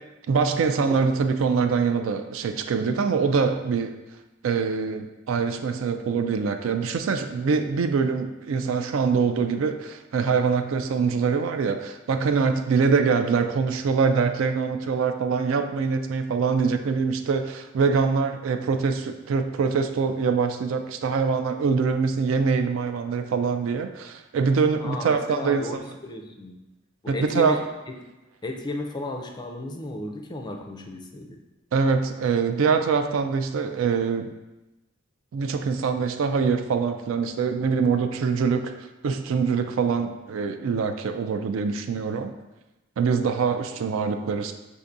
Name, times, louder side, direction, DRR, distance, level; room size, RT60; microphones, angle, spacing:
voice 1, 0.3-4.0 4.4-25.8 27.1-27.6 31.7-34.3 35.3-38.7 39.0-42.3 43.0-44.6, right 5 dB, 70° right, 7 dB, 0.3 m, -24 dB
voice 2, 24.8-26.6 27.0-27.6 28.4-31.4, left 2 dB, 20° left, 2 dB, 0.4 m, -34 dB
6.6 x 2.6 x 2.5 m, 1.0 s
head